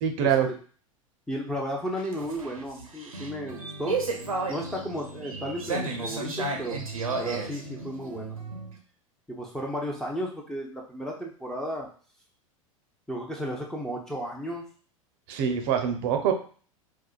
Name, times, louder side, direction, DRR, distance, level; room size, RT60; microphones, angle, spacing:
voice 1, 0.0-0.5 15.3-16.3, right 8 dB, 50° right, 5 dB, 0.6 m, -24 dB
voice 2, 1.3-4.0 4.5-6.8 7.2-8.4 9.3-11.9 13.1-14.7, equal, 5° left, -2 dB, 0.7 m, -34 dB
sound 1, 1.9-8.7, right 3 dB, 85° right, 0.7 m, -33 dB
4.5 x 2.1 x 2.4 m, 0.42 s
figure-of-eight pair, 85°, 18 cm